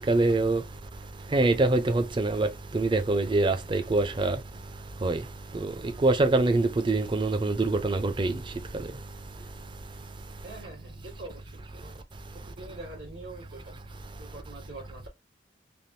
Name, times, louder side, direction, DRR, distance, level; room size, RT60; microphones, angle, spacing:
voice 1, 0.1-0.6 1.3-2.5 2.7-4.4 5.0-5.2 5.5-5.7 6.0-8.3, right 2 dB, 25° right, 0.5 m, -24 dB
voice 2, 10.4-11.9 12.3-13.7 14.2-15.1, right 2 dB, 85° right, 1.4 m, -44 dB
3.4 x 2.4 x 2.6 m
head